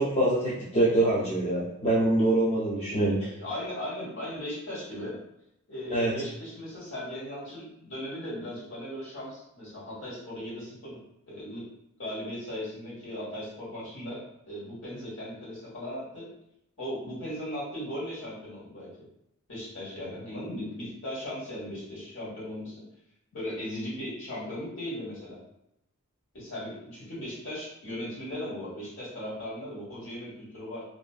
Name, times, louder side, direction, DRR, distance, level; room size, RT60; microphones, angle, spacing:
voice 1, 0.0-3.2 5.9-6.1, right 1 dB, 25° left, -7 dB, 0.4 m, -24 dB
voice 2, 2.7-5.2 5.7-11.0 11.3-11.6 12.0-16.3 16.8-18.9 19.5-22.8 23.3-25.4 26.3-30.8, left 1 dB, 55° left, -7 dB, 1.3 m, -37 dB
2.5 x 2.3 x 2.3 m, 0.80 s
head